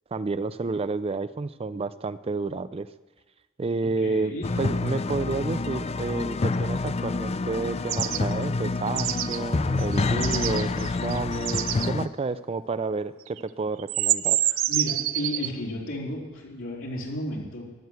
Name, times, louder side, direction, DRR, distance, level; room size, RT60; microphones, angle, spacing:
voice 1, 0.1-2.9 3.6-14.4, right 3 dB, 30° right, 14 dB, 0.4 m, -30 dB
voice 2, 4.0-4.5 14.7-17.6, left 1 dB, 75° left, -3 dB, 3.9 m, -33 dB
sound 1, 4.4-12.1, left 3 dB, 30° left, 0.4 m, -27 dB
sound 2, 7.9-8.2 9.0-9.4 9.8-11.9 13.3-13.4 13.8-15.5, right 14 dB, 80° right, 0.5 m, -27 dB
14.0 x 11.5 x 8.0 m, 1.2 s
head